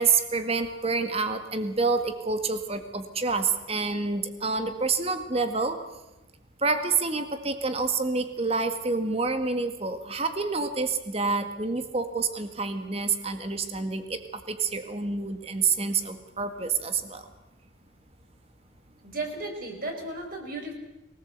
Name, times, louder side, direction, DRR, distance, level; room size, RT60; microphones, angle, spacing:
voice 1, 0.0-5.8 6.6-14.2 14.5-17.3, right 4 dB, 30° right, 8 dB, 1.8 m, -28 dB
voice 2, 19.0-20.7, right 2 dB, 45° right, 2 dB, 5.2 m, -34 dB
23.5 x 18.5 x 8.2 m, 1.0 s
head